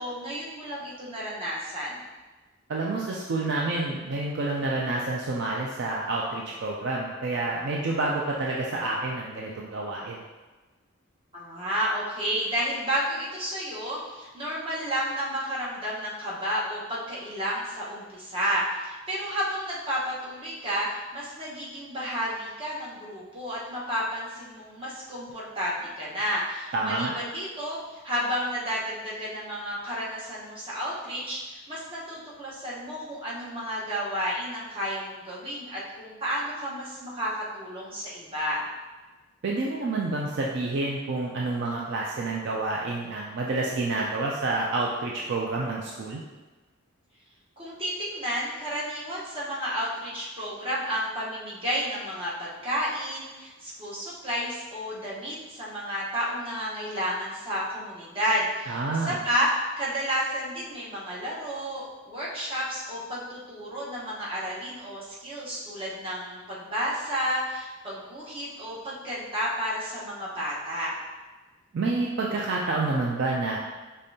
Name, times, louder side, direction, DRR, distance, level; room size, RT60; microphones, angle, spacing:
voice 1, 0.0-2.0 11.3-27.8 28.0-38.6 47.6-70.9, equal, 25° right, -7 dB, 1.0 m, -31 dB
voice 2, 2.7-10.2 26.7-27.1 39.4-46.2 58.7-59.2 71.7-73.6, right 2 dB, 55° right, -2 dB, 0.4 m, -28 dB
5.2 x 3.3 x 2.7 m, 1.2 s
head